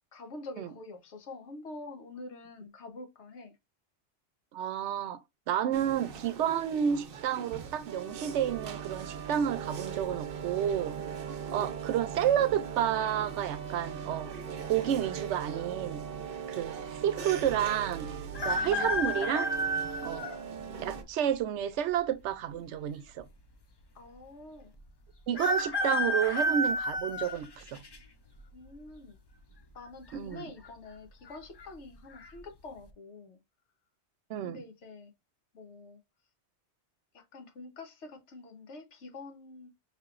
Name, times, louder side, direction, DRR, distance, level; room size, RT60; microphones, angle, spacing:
voice 1, 0.1-3.5 20.0-20.2 23.9-24.7 28.5-29.2 29.7-33.4 34.4-35.1 35.5-36.0 37.1-39.7, left 3 dB, 80° left, 1.3 m, -46 dB
voice 2, 4.5-5.2 5.5-11.0 11.5-14.3 14.7-16.0 16.5-18.1 18.4-19.5 20.0-20.3 20.8-23.3 25.3-27.8 30.1-30.5 34.3-34.6, right 9 dB, 85° right, 0.9 m, -30 dB
sound 1, 5.7-21.0, right 7 dB, 55° right, 0.8 m, -39 dB
sound 2, 18.3-20.4 21.0-21.1 22.2-22.9 23.2-23.3 23.4-23.5 25.4-28.0 28.5-28.9 30.0-30.4 30.6-30.7 31.3-31.7 32.1-32.3, equal, 35° left, 0.4 m, -31 dB
5.5 x 3.0 x 2.4 m
omnidirectional pair, 1.2 m